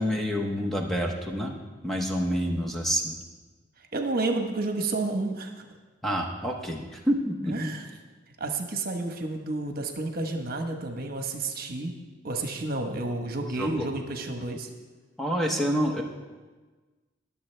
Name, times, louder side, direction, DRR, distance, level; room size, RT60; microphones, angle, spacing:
voice 1, 0.0-1.5 1.8-3.2 6.0-7.7 13.6-13.9 15.2-16.0, equal, ahead, 0 dB, 0.9 m, -28 dB
voice 2, 3.9-5.7 7.5-7.8 8.4-11.9 12.2-14.7, right 2 dB, 55° right, 5 dB, 1.1 m, -30 dB
21.0 x 7.1 x 3.3 m, 1.3 s
head